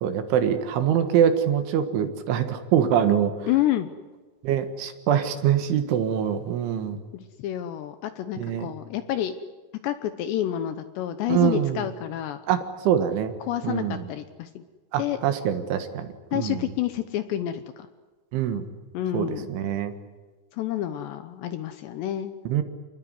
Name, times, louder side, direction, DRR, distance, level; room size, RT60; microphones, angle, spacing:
voice 1, 0.0-3.5 4.4-7.0 8.4-8.7 11.3-11.9 12.5-13.3 13.6-14.1 14.9-16.7 18.3-18.7 19.1-19.9 22.5-22.6, right 9 dB, 75° right, 8 dB, 3.9 m, -24 dB
voice 2, 3.5-3.9 7.1-9.3 9.8-12.4 13.4-14.6 15.0-15.2 16.3-17.9 18.9-19.5 20.5-22.3, left 12 dB, 75° left, 10 dB, 2.7 m, -29 dB
27.5 x 20.0 x 9.7 m, 1.3 s
omnidirectional pair, 5.8 m